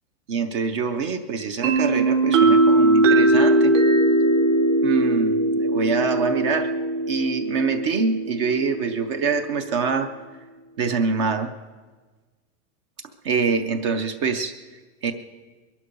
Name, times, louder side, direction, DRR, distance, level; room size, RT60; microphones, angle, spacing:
voice 1, 0.3-3.7 4.8-6.7 7.1-10.1 10.8-11.5 13.2-14.6 15.0-15.1, right 5 dB, 25° right, 8 dB, 0.4 m, -25 dB
sound 1, 1.6-9.3, right 2 dB, 80° right, 2.6 m, -20 dB
22.0 x 11.5 x 5.2 m, 1.4 s
supercardioid pair, 180°, 37 cm